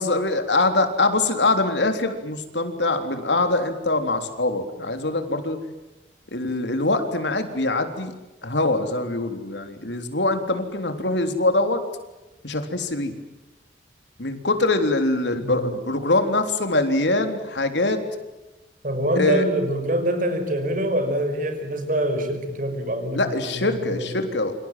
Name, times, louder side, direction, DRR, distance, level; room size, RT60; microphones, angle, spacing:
voice 1, 0.0-5.6 6.3-8.1 8.4-11.8 12.4-13.1 14.2-18.0 19.1-19.4 23.1-24.5, left 2 dB, 85° left, 7 dB, 3.7 m, -23 dB
voice 2, 18.8-23.2 23.5-24.4, right 1 dB, 50° right, 8 dB, 5.7 m, -25 dB
28.5 x 26.0 x 7.6 m, 1.0 s
head